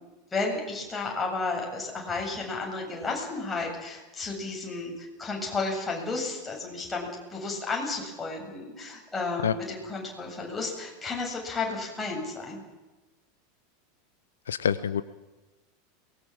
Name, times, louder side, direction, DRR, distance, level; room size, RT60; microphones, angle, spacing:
voice 1, 0.3-12.6, left 3 dB, 15° left, 0 dB, 7.6 m, -32 dB
voice 2, 14.5-15.0, left 8 dB, 70° left, 15 dB, 0.7 m, -26 dB
23.5 x 20.5 x 7.6 m, 1.1 s
figure-of-eight pair, 85°, 0 cm